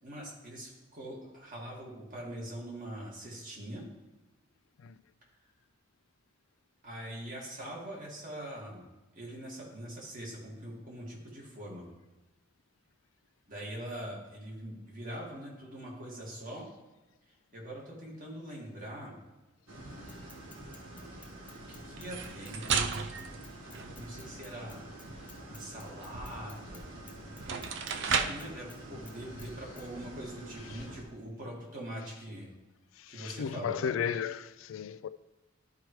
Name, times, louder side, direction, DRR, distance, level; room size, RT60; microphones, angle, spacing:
voice 1, 0.0-3.8 6.8-8.9 9.1-11.8 13.5-16.7 17.5-19.2 21.7-22.9 24.0-24.8 25.5-26.9 27.9-32.5 33.1-33.8, right 1 dB, 40° right, 2.0 m, -43 dB
sound 1, 19.7-31.0, right 1 dB, 90° right, 1.4 m, -47 dB
Bicycle / Mechanisms, 20.1-26.8 27.1-28.8 29.1-29.5 29.8-29.9, left 3 dB, 10° left, 0.9 m, -55 dB
sound 2, 22.0-24.4 26.8-26.9 27.3-28.5, right 6 dB, 60° right, 0.4 m, -33 dB
voice 2, 33.1-35.1, left 7 dB, 70° left, 0.3 m, -34 dB
12.0 x 4.6 x 3.1 m
head